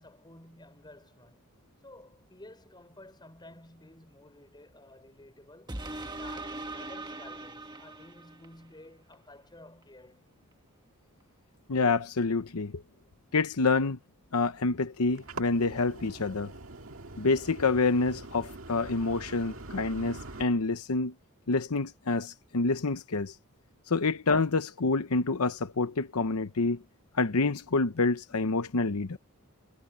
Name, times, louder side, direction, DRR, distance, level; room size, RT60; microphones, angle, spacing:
voice 1, 0.0-1.6 1.8-10.5, left 1 dB, 20° left, 5.4 m, -53 dB
sound 1, 5.7-8.6 9.1-9.2, right 2 dB, 20° right, 1.5 m, -40 dB
voice 2, 11.7-12.8 13.3-14.0 14.3-16.5 17.2-21.1 21.5-23.3 23.9-26.8 27.1-29.2, left 3 dB, 80° left, 0.9 m, -27 dB
sound 2, 15.0-20.4, right 2 dB, 65° right, 2.2 m, -44 dB
head